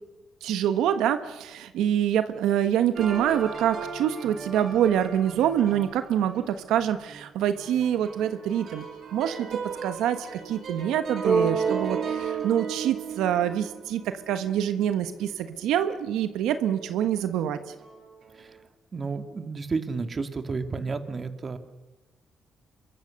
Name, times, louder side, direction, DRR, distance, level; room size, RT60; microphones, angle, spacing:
voice 1, 0.4-8.8 9.1-9.5 9.8-17.6, right 10 dB, 90° right, 9 dB, 1.2 m, -26 dB
sound 1, 3.0-6.6 7.1-7.2 7.5-15.5 15.7-16.0 16.5-16.9 17.4-18.1, right 5 dB, 55° right, 5.7 m, -33 dB
voice 2, 18.9-21.6, right 4 dB, 35° right, 8 dB, 2.3 m, -31 dB
26.5 x 23.0 x 6.6 m, 1.1 s
cardioid pair, 90°, 0 cm